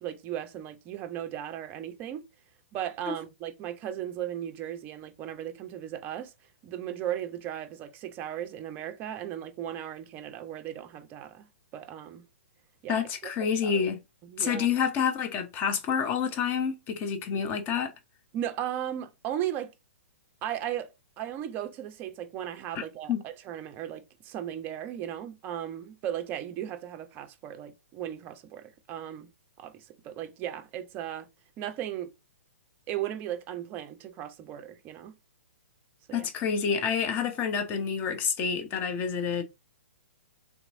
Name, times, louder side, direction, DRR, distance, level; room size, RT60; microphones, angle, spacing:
voice 1, 0.0-2.2 2.7-6.3 6.6-12.2 12.8-13.0 13.6-13.9 14.3-14.7 18.3-19.7 20.4-20.9 21.2-29.3 29.6-31.3 31.6-32.1 32.9-35.2 36.1-36.3, right 11 dB, 25° right, 0.5 m, -36 dB
voice 2, 12.9-14.0 14.4-17.9 22.7-22.8 23.1-23.2 36.1-39.4, left 6 dB, 25° left, 0.8 m, -28 dB
3.5 x 3.0 x 2.5 m
figure-of-eight pair, 120°, 7 cm